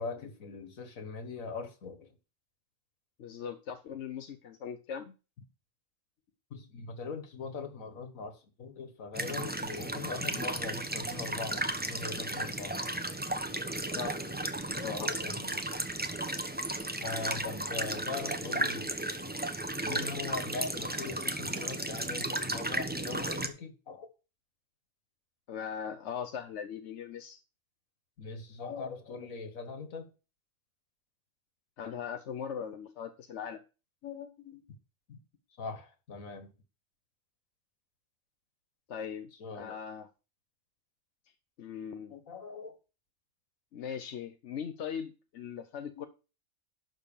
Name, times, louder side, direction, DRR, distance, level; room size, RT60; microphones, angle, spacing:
voice 1, 0.0-2.1 6.5-12.8 14.8-15.6 17.0-18.9 19.8-24.1 28.2-30.1 34.0-34.6 35.1-35.2 35.6-36.5 39.4-39.8 42.1-42.8 46.0-46.1, left 4 dB, 90° left, 1.9 m, -41 dB
voice 2, 3.2-5.1 13.9-14.2 14.7-15.1 25.5-27.4 31.8-33.6 38.9-39.3 39.5-40.1 41.6-42.1 43.7-46.1, left 7 dB, 60° left, 1.0 m, -39 dB
sound 1, 9.1-23.5, right 1 dB, 10° right, 0.7 m, -34 dB
11.5 x 3.9 x 7.1 m
omnidirectional pair, 1.4 m